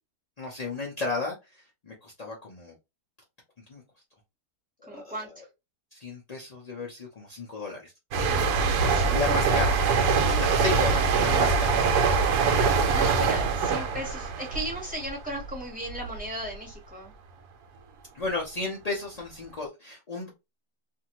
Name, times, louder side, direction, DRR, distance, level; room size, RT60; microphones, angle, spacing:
voice 1, 0.4-1.3 1.8-2.7 3.7-3.8 4.8-5.4 5.9-7.9 9.1-9.8 10.3-11.8 18.1-20.3, left 3 dB, 60° left, 0.4 m, -33 dB
voice 2, 4.9-5.4 8.9-9.7 12.9-17.1, right 1 dB, 5° right, 1.1 m, -36 dB
sound 1, 8.1-15.6 15.9-16.2, right 5 dB, 85° right, 1.2 m, -23 dB
2.7 x 2.6 x 2.9 m
omnidirectional pair, 1.7 m